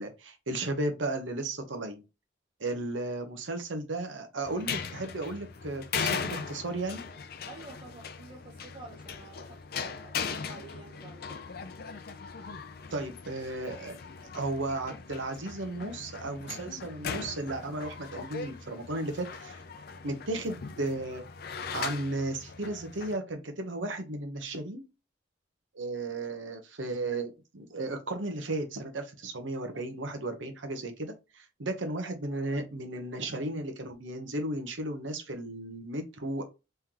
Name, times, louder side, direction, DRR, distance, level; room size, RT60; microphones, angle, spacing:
voice 1, 0.0-2.0 2.6-7.0 12.9-14.0 14.3-19.6 20.0-21.2 21.7-24.9 25.7-36.4, right 2 dB, 85° right, 0.9 m, -34 dB
sound 1, 4.4-23.2, left 6 dB, 55° left, 0.4 m, -39 dB
voice 2, 7.5-11.4, right 3 dB, 30° right, 0.8 m, -49 dB
3.7 x 3.3 x 2.8 m
head